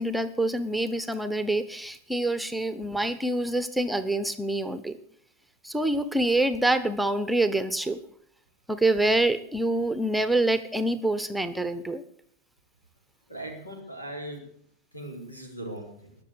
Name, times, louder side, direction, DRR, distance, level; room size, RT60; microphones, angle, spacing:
voice 1, 0.0-5.0 5.6-8.0 8.7-12.0, right 1 dB, ahead, 11 dB, 1.0 m, -26 dB
voice 2, 13.3-14.4 14.9-16.2, right 1 dB, 85° left, 3 dB, 4.1 m, -39 dB
20.0 x 6.7 x 8.3 m, 0.65 s
figure-of-eight pair, 90°, 0 cm